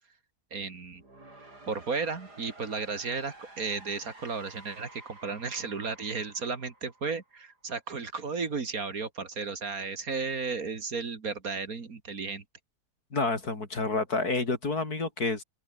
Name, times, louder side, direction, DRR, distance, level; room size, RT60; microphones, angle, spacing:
voice 1, 0.5-1.0 1.7-12.4, right 4 dB, 60° right, 2.6 m, -34 dB
sound 1, 0.8-7.8, right 2 dB, 75° right, 7.6 m, -52 dB
voice 2, 13.1-15.4, left 3 dB, 65° left, 4.5 m, -29 dB
open air
omnidirectional pair, 1.7 m